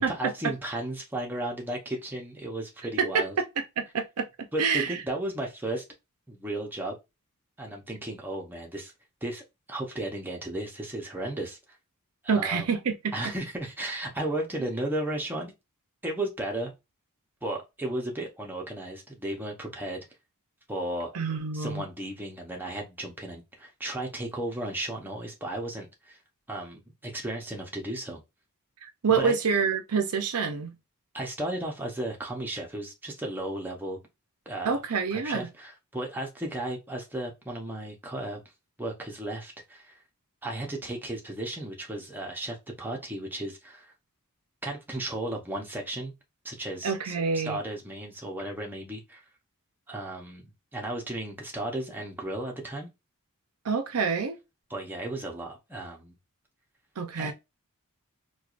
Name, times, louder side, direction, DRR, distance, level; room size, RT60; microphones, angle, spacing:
voice 1, 0.0-3.4 4.5-5.8 6.3-7.0 7.6-8.9 9.2-9.4 9.7-11.6 12.2-12.6 13.1-15.5 16.0-16.7 17.4-20.1 20.7-21.1 21.5-26.2 26.5-28.2 29.2-29.4 31.1-34.0 34.5-34.8 35.1-38.4 38.8-40.0 40.4-43.9 44.6-46.1 46.4-47.1 47.4-49.2 49.9-52.9 54.7-56.2 57.2-57.3, right 1 dB, 10° right, 0.8 m, -34 dB
voice 2, 3.8-5.0 12.3-13.1 21.1-21.8 28.8-30.8 34.6-35.5 46.8-47.6 53.6-54.4 57.0-57.3, right 5 dB, 75° right, 0.6 m, -27 dB
4.5 x 2.3 x 2.5 m
head